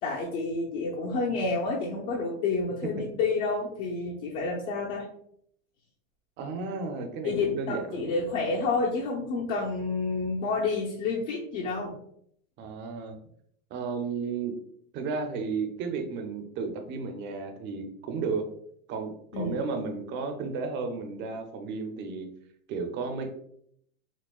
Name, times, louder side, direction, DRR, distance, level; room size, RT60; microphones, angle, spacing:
voice 1, 0.0-5.1 7.2-11.9 19.3-19.6, left 3 dB, 60° left, -3 dB, 0.9 m, -29 dB
voice 2, 6.4-8.2 12.6-13.2 13.7-14.5 14.9-18.4 18.9-22.3 22.7-23.3, right 4 dB, 25° right, 5 dB, 0.5 m, -33 dB
6.2 x 2.1 x 2.3 m, 0.68 s
supercardioid pair, 135°, 42 cm